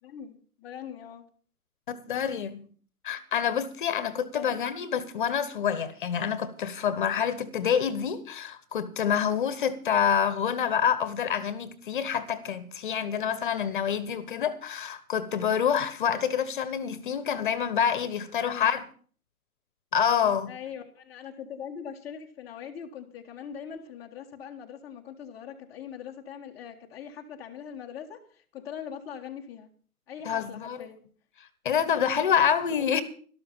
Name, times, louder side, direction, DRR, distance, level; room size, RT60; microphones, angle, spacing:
voice 1, 0.0-1.2 4.3-4.6 18.4-18.8 20.5-29.7 30.1-31.0 32.7-33.0, left 8 dB, 5° left, 1.2 m, -42 dB
voice 2, 1.9-2.6 3.0-18.8 19.9-20.5 30.2-30.9 31.6-33.0, left 8 dB, 30° left, 1.3 m, -27 dB
13.0 x 12.5 x 5.5 m
hypercardioid pair, 150°, 46 cm